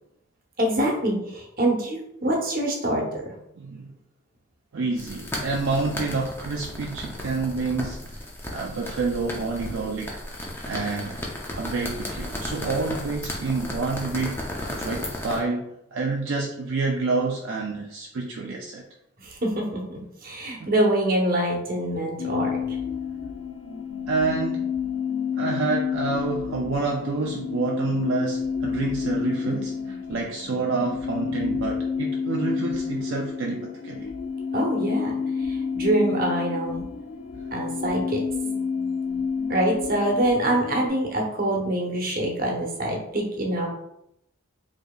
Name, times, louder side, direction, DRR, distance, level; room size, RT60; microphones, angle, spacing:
voice 1, 0.6-3.0 19.2-22.5 34.5-35.2 35.4-36.8 37.5-38.2 39.5-43.7, right 1 dB, 40° right, -1 dB, 0.8 m, -25 dB
voice 2, 3.6-3.9 4.7-8.0 8.5-10.1 10.7-11.2 11.5-14.4 14.7-18.8 20.6-20.7 24.1-24.7 25.4-34.1, right 4 dB, 60° right, -1 dB, 0.4 m, -28 dB
sound 1, 5.0-15.4, left 1 dB, 10° left, 0.5 m, -34 dB
sound 2, 22.2-40.9, left 6 dB, 60° left, 0.4 m, -29 dB
4.8 x 2.7 x 2.3 m, 0.78 s
head